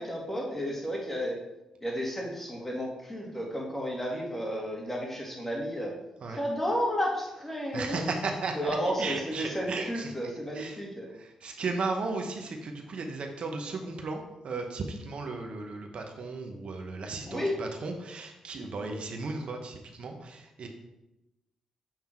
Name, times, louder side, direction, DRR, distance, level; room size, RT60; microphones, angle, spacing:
voice 1, 0.0-1.4 1.8-5.9 6.3-8.1 8.6-11.1 17.3-17.6 18.8-19.0, equal, 15° left, -1 dB, 2.2 m, -32 dB
voice 2, 7.7-10.1 10.5-10.8 11.1-20.7, right 3 dB, 60° right, 3 dB, 1.0 m, -35 dB
7.6 x 3.6 x 4.5 m, 0.94 s
supercardioid pair, 45°, 2 cm